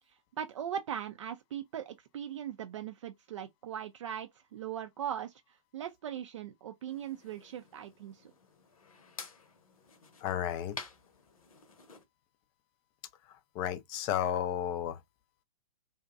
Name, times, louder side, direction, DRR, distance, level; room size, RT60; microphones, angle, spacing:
voice 1, 0.1-8.3, right 9 dB, 55° right, 0.4 m, -40 dB
sound 1, 6.9-12.0, left 5 dB, 70° left, 0.8 m, -50 dB
voice 2, 10.2-10.8 13.5-15.0, left 10 dB, 25° left, 0.4 m, -32 dB
2.6 x 2.1 x 2.3 m
figure-of-eight pair, 120°, 18 cm